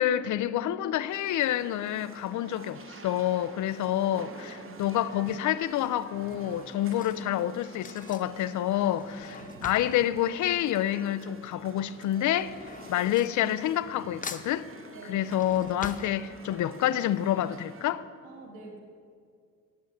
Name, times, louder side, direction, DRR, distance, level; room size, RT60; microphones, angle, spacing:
voice 1, 0.0-9.4 9.6-12.6 12.9-14.7 15.1-18.0, left 12 dB, 75° left, 0.6 m, -28 dB
sound 1, 1.1-17.9, right 3 dB, 45° right, 1.3 m, -49 dB
Drawer open or close / Cutlery silverware, 4.2-4.6 5.4-11.3 11.6-14.0 14.2-16.8 17.2-17.3 17.5-17.6, left 5 dB, 25° left, 0.8 m, -45 dB
voice 2, 9.3-9.6 12.9-13.1 14.9-15.3 18.2-18.8, right 2 dB, 85° right, 2.4 m, -47 dB
8.9 x 8.4 x 9.5 m
cardioid pair, 90°, 30 cm